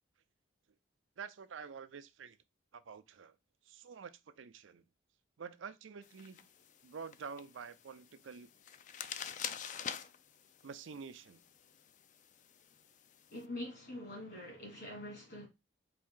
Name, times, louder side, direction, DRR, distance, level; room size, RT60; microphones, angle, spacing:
voice 1, 1.2-2.4 2.7-3.3 3.7-4.8 5.4-6.5 6.8-8.5 10.6-11.4, right 6 dB, 90° right, 0.5 m, -48 dB
sound 1, 6.0-13.4, left 8 dB, 40° left, 0.3 m, -47 dB
voice 2, 13.3-15.5, left 1 dB, 60° left, 2.3 m, -44 dB
4.3 x 2.6 x 3.6 m
head